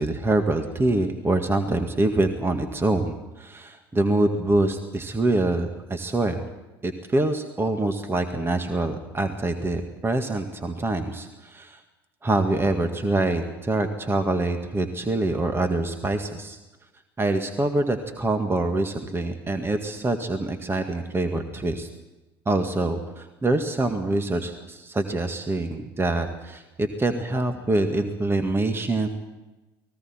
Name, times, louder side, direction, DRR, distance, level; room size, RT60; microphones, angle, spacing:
voice 1, 0.0-6.4 6.8-11.8 12.2-16.6 17.2-21.9 22.5-29.1, right 2 dB, 20° right, 6 dB, 1.9 m, -25 dB
30.0 x 20.0 x 4.5 m, 1.1 s
figure-of-eight pair, 70°, 13 cm